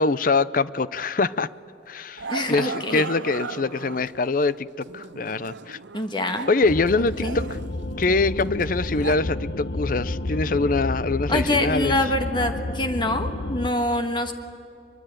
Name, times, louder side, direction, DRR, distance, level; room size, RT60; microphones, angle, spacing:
voice 1, 0.0-1.5 1.9-5.8 6.5-7.6 8.0-12.0, left 3 dB, 50° left, 18 dB, 0.6 m, -24 dB
Growling, 1.2-1.4 2.2-4.3 4.8-6.6 6.9-9.2, right 4 dB, 80° right, 0.7 m, -37 dB
voice 2, 2.3-3.1 5.9-6.5 6.9-7.4 11.3-14.3, left 1 dB, 25° left, 6 dB, 1.4 m, -25 dB
sound 1, 6.6-13.7, left 2 dB, 70° left, 1.1 m, -30 dB
23.5 x 23.0 x 9.2 m, 2.6 s
head